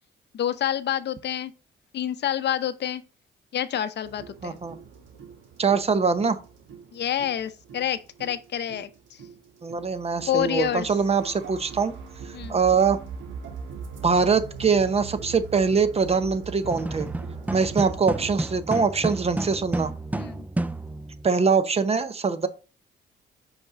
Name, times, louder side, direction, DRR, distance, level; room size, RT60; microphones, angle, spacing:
voice 1, 0.3-1.5 1.9-3.0 3.5-4.6 6.9-9.2 10.3-10.9 12.3-12.6 20.2-20.5, left 10 dB, 60° left, 0.7 m, -28 dB
sound 1, 4.0-18.4, right 5 dB, 75° right, 1.3 m, -41 dB
voice 2, 4.4-4.8 5.6-6.4 9.6-11.9 12.5-13.0 14.0-17.1 17.5-19.9 21.2-22.5, right 5 dB, 30° right, 0.8 m, -23 dB
sound 2, 16.6-21.3, right 2 dB, 10° right, 0.4 m, -31 dB
5.8 x 5.3 x 3.6 m
cardioid pair, 90°, 20 cm